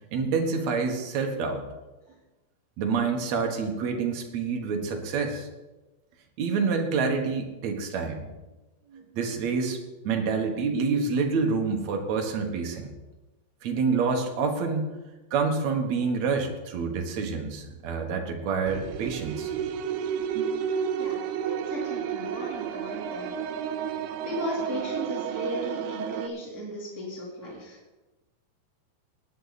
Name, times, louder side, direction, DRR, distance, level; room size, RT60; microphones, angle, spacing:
voice 1, 0.1-1.6 2.8-5.5 6.4-8.2 8.9-9.8 10.0-12.9 13.6-15.0 15.3-19.5 20.3-20.5, right 5 dB, 55° right, 3 dB, 2.3 m, -27 dB
sound 1, 18.7-26.3, right 8 dB, 90° right, 2.7 m, -31 dB
voice 2, 21.0-23.4 24.2-27.8, equal, 5° right, -4 dB, 2.4 m, -36 dB
18.5 x 9.5 x 4.1 m, 1.1 s
omnidirectional pair, 4.4 m